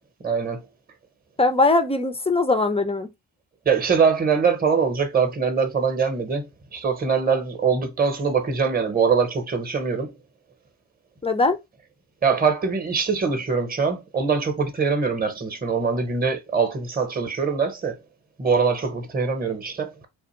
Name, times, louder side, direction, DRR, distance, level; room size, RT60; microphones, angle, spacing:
voice 1, 0.2-0.6 3.7-10.1 12.2-18.0 18.4-20.1, right 5 dB, 20° right, 0.8 m, -23 dB
voice 2, 1.4-3.1 11.2-11.6, left 3 dB, 15° left, 0.4 m, -20 dB
2.5 x 2.1 x 3.0 m
supercardioid pair, 45°, 48 cm